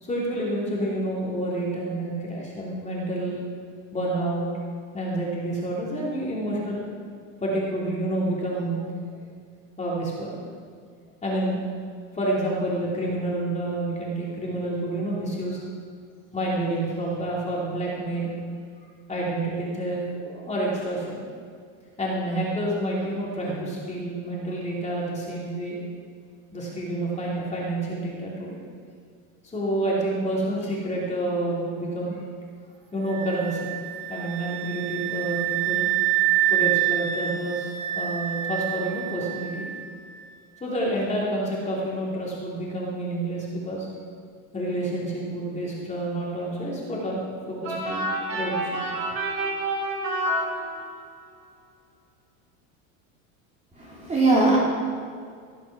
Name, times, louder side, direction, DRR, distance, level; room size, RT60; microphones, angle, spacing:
voice 1, 0.0-3.4 3.9-4.5 4.9-6.8 7.4-9.0 9.8-10.4 11.2-11.6 12.1-15.6 16.3-18.3 19.1-21.2 22.0-25.8 26.5-28.6 29.4-32.2 32.9-33.7 34.1-35.9 36.5-39.7 40.6-43.9 44.5-48.0 48.3-48.8, right 1 dB, 15° left, -5 dB, 2.9 m, -28 dB
sound 1, 33.1-39.9, right 13 dB, 75° right, 0.9 m, -27 dB
sound 2, 47.6-51.2, right 1 dB, 45° right, 3.5 m, -28 dB
voice 2, 53.8-54.6, right 2 dB, 15° right, -4 dB, 2.9 m, -20 dB
16.5 x 6.0 x 5.9 m, 2.1 s
supercardioid pair, 120°, 39 cm